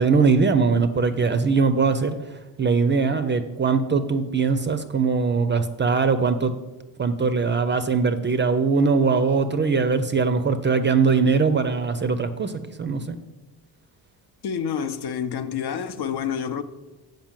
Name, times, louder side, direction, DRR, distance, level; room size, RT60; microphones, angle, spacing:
voice 1, 0.0-2.2 2.6-6.5 7.0-12.5 12.8-13.2, right 4 dB, 30° right, 0.4 m, -21 dB
voice 2, 14.4-16.6, left 7 dB, 70° left, 0.7 m, -28 dB
7.5 x 5.3 x 7.3 m
wide cardioid pair, 180°, 41 cm